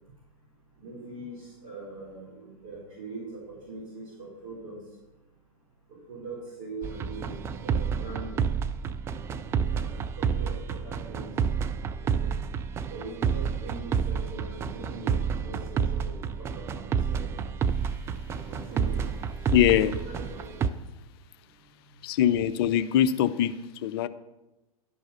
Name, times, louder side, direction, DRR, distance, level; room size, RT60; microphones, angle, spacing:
voice 1, 0.8-4.8 6.1-8.5 9.6-9.9 10.2-11.3 12.0-12.3 12.9-17.5 18.3-19.0 19.7-20.6, right 3 dB, 50° right, -7 dB, 4.2 m, -42 dB
sound 1, 6.8-20.7, right 6 dB, 15° right, 0.3 m, -29 dB
voice 2, 19.5-19.9 22.0-23.5 23.8-24.1, left 11 dB, 40° left, 14 dB, 0.5 m, -22 dB
11.5 x 4.8 x 7.0 m, 1.0 s
figure-of-eight pair, 100°, 19 cm